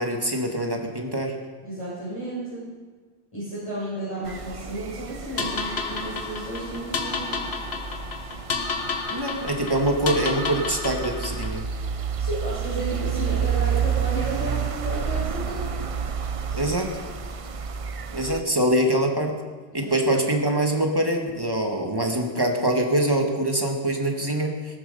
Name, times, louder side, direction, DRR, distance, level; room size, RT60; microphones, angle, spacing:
voice 1, 0.0-1.3 9.1-11.6 16.5-16.9 18.1-19.3 19.7-24.8, right 1 dB, 20° right, 2 dB, 2.0 m, -24 dB
voice 2, 1.6-2.7 3.3-7.4 12.2-15.7 19.7-20.0, right 1 dB, 30° left, -11 dB, 6.3 m, -32 dB
sound 1, 4.2-18.4, right 7 dB, 40° right, 0.6 m, -30 dB
sound 2, 5.4-11.6, left 4 dB, 85° left, 1.6 m, -31 dB
19.0 x 12.0 x 5.5 m, 1.4 s
omnidirectional pair, 1.1 m